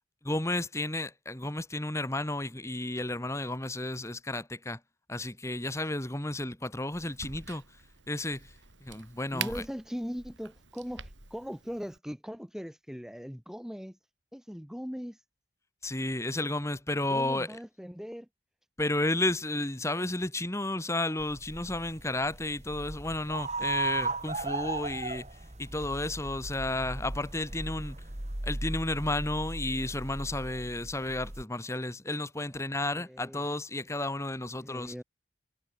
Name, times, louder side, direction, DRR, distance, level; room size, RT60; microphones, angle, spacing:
voice 1, 0.2-4.8 5.1-7.6 8.1-8.5 8.8-9.6 15.8-17.6 18.8-25.3 25.6-28.0 28.4-34.9, left 2 dB, 15° left, 1.7 m, -32 dB
Crack, 6.9-12.0, right 7 dB, 80° right, 6.6 m, -44 dB
voice 2, 9.3-14.0 14.3-15.2 17.1-18.3 32.5-32.6 32.9-33.4 34.6-35.0, equal, 5° right, 1.1 m, -40 dB
sound 1, 21.2-31.4, right 3 dB, 35° right, 2.3 m, -37 dB
head